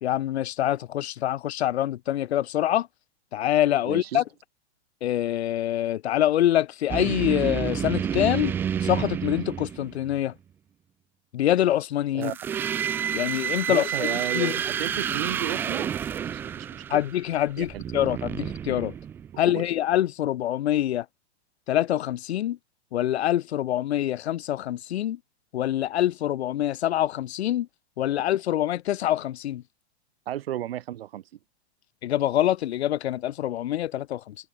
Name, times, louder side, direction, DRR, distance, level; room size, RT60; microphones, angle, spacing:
voice 1, 0.0-2.9 3.3-4.2 5.0-10.3 11.3-12.3 13.1-14.5 16.9-18.9 19.4-21.1 21.7-22.6 22.9-25.2 25.5-27.7 28.0-29.6 32.0-34.3, left 12 dB, 70° left, 1.1 m, -25 dB
voice 2, 3.8-4.2 12.1-12.3 13.7-17.0 17.6-18.1 19.5-19.7 30.3-31.2, right 12 dB, 60° right, 2.3 m, -34 dB
sound 1, 6.9-10.2 12.2-19.5, right 8 dB, 5° right, 0.6 m, -30 dB
supercardioid pair, 180°, 33 cm